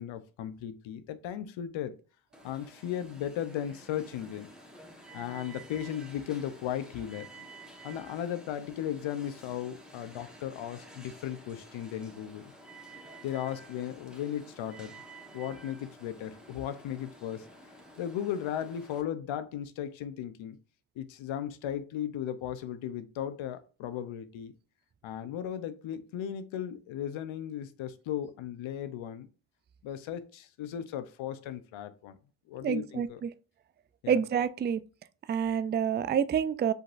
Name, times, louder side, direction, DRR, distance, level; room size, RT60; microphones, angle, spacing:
voice 1, 0.0-1.9 2.4-4.5 5.1-7.4 7.8-12.4 13.2-14.9 15.3-17.5 18.0-20.6 21.0-24.5 25.0-29.3 29.8-32.2 32.5-33.2 34.0-34.2, left 10 dB, 75° left, 0.8 m, -36 dB
Alarm, 2.3-19.0, right 1 dB, ahead, 1.2 m, -51 dB
voice 2, 32.6-33.3 34.1-34.8 35.3-36.7, right 8 dB, 25° right, 0.3 m, -28 dB
5.3 x 3.9 x 2.5 m
supercardioid pair, 60°, 47 cm